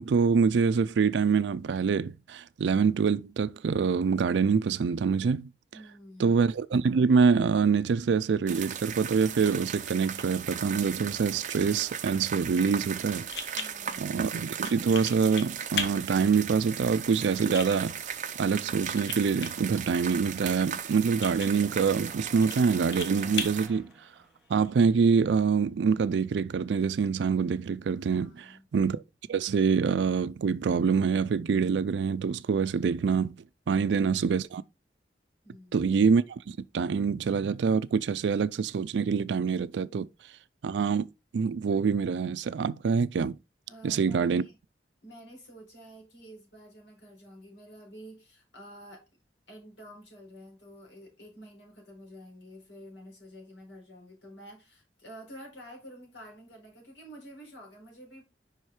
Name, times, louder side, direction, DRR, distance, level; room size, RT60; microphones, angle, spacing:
voice 1, 0.0-5.5 6.2-13.6 14.0-18.0 18.4-23.9 24.5-29.0 29.3-33.4 33.7-34.6 35.7-40.1 40.6-41.1 41.3-43.4 43.8-44.4, right 5 dB, 85° right, 0.4 m, -25 dB
voice 2, 5.7-6.4 13.5-14.2 28.1-28.7 35.4-35.9 43.7-44.6 45.0-49.0 49.5-58.3, equal, 85° left, 3.9 m, -49 dB
sound 1, 8.5-23.7, right 8 dB, 45° right, 0.7 m, -37 dB
sound 2, 13.2-24.7, left 6 dB, 70° left, 1.1 m, -41 dB
sound 3, 20.1-25.0, right 1 dB, 5° right, 1.0 m, -53 dB
5.4 x 4.8 x 4.4 m
head